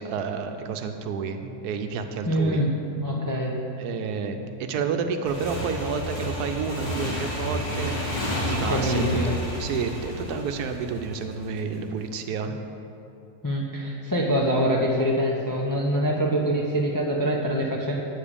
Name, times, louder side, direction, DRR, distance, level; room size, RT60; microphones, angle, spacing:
voice 1, 0.0-2.6 3.8-12.5, right 5 dB, 85° right, 6 dB, 1.2 m, -30 dB
sound 1, 1.4-9.0, right 2 dB, 45° right, 1.4 m, -45 dB
voice 2, 2.3-2.7 3.0-3.6 8.7-9.3 13.4-18.0, equal, 35° left, -2 dB, 0.3 m, -24 dB
Motorcycle / Engine, 5.3-11.6, left 1 dB, 75° left, 2.4 m, -30 dB
8.3 x 5.0 x 7.1 m, 2.8 s
omnidirectional pair, 1.6 m